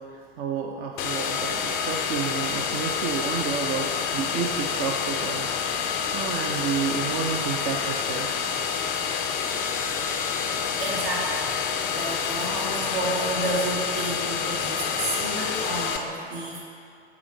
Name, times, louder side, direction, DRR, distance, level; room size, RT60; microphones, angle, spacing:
voice 1, 0.4-3.9 4.1-5.5 6.1-8.3, right 6 dB, 25° right, 1 dB, 0.4 m, -30 dB
sound 1, 1.0-16.0, left 6 dB, 35° left, 0.4 m, -28 dB
voice 2, 10.8-16.6, right 2 dB, 60° right, -4 dB, 1.5 m, -31 dB
8.5 x 3.8 x 3.3 m, 2.4 s
figure-of-eight pair, 80°, 35 cm